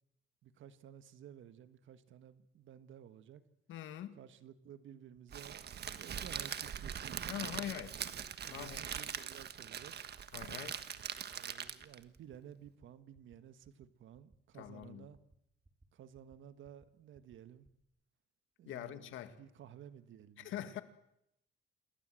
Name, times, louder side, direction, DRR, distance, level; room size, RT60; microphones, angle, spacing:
voice 1, 0.4-3.4 4.2-7.7 8.4-10.0 11.3-15.2 15.9-17.7 18.6-20.6, right 10 dB, 75° right, 11 dB, 1.7 m, -55 dB
voice 2, 3.7-4.1 7.3-7.9 8.5-8.8 10.3-10.8 14.5-15.1 18.7-19.4 20.4-20.8, left 11 dB, 85° left, 10 dB, 2.2 m, -43 dB
sound 1, 5.3-5.4 5.6-5.9 6.1-6.4 6.6-6.9 7.1-7.4 7.6-7.9 8.1-8.4 8.6-8.9 9.1-9.4 9.6-9.9 10.1-10.4 10.6-10.9 11.1-11.4 11.6-11.9 12.1-12.4 12.6-12.9 13.1-13.4 13.6-13.9 14.1-14.4 14.6-14.9 15.1-15.4 15.6-15.9 16.1-16.4 16.6-16.9 17.1-17.4 17.6-17.8, right 2 dB, 20° right, 4.2 m, -65 dB
Crackle, 5.3-12.0, right 8 dB, 55° right, 1.5 m, -42 dB
28.0 x 20.5 x 7.8 m, 0.78 s
cardioid pair, 90°, 20 cm